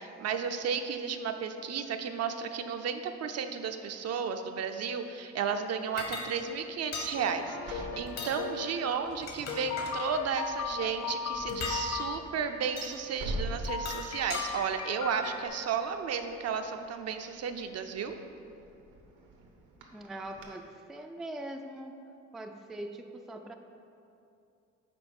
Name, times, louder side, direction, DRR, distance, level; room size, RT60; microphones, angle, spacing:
voice 1, 0.0-18.2, right 6 dB, 55° right, 7 dB, 0.5 m, -33 dB
sound 1, 6.0-6.3 6.9-7.1 8.1-8.4 9.1-10.0 11.5-11.8 12.8-12.9 13.6-14.5, left 4 dB, 60° left, 1.2 m, -38 dB
sound 2, 7.2-8.8 9.5-12.1 13.7-15.5, left 6 dB, 85° left, 0.6 m, -37 dB
sound 3, 7.6-9.1 9.6-9.9 10.2-20.5, right 1 dB, 80° right, 0.9 m, -45 dB
voice 2, 19.9-21.9 22.3-23.5, right 1 dB, ahead, 4 dB, 0.3 m, -42 dB
5.8 x 4.3 x 5.3 m, 2.7 s
cardioid pair, 90°, 30 cm